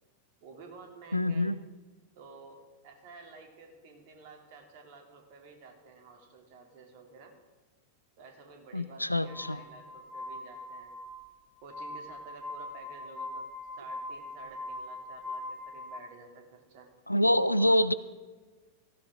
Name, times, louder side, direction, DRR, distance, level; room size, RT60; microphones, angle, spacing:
voice 1, 0.4-1.5 2.1-7.3 8.2-11.0 11.6-13.4 13.7-16.9 17.4-17.8, right 4 dB, 50° right, 3 dB, 3.1 m, -52 dB
voice 2, 1.1-1.6 8.7-9.6 17.1-17.9, left 1 dB, 85° left, 16 dB, 0.5 m, -25 dB
Glass, 9.3-16.0, left 2 dB, 15° left, 2.5 m, -41 dB
17.5 x 15.5 x 3.8 m, 1.3 s
figure-of-eight pair, 90°, 0 cm